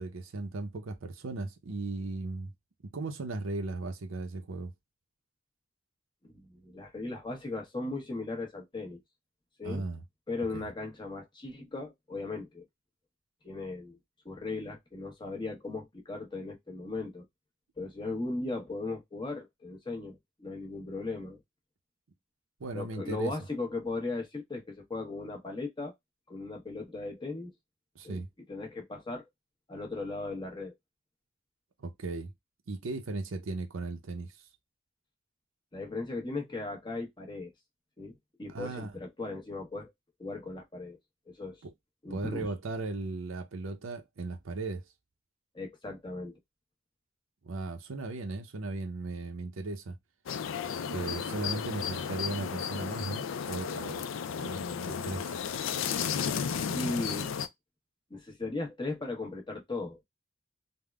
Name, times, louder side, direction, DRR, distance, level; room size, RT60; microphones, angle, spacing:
voice 1, 0.0-2.5 2.8-4.7 9.6-10.0 10.5-10.7 22.6-23.4 27.9-28.3 31.8-32.3 32.7-34.4 38.5-38.9 41.6-41.7 42.1-44.8 47.4-50.0 50.9-54.1 54.3-55.4, right 3 dB, 85° right, 0.6 m, -37 dB
voice 2, 6.2-9.0 9.6-9.8 10.3-12.6 13.4-14.0 14.2-17.2 17.8-21.4 22.7-26.0 26.3-27.5 28.0-28.2 28.5-29.2 29.7-30.7 35.7-37.5 38.0-39.9 40.2-41.0 41.3-41.6 42.0-42.5 45.5-46.4 56.7-57.3 58.1-60.0, left 3 dB, 25° left, 0.9 m, -37 dB
sound 1, 50.3-57.5, left 7 dB, 70° left, 0.4 m, -33 dB
3.5 x 2.1 x 2.2 m
head